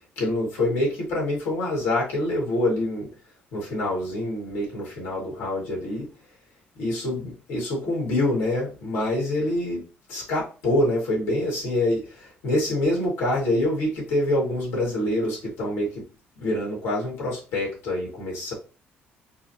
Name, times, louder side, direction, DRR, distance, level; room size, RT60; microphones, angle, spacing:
voice 1, 0.2-3.1 3.5-6.1 6.8-9.8 10.1-16.0 16.4-18.5, left 1 dB, 85° left, -4 dB, 2.2 m, -26 dB
4.6 x 2.5 x 2.9 m, 0.34 s
cardioid pair, 170°, 4 cm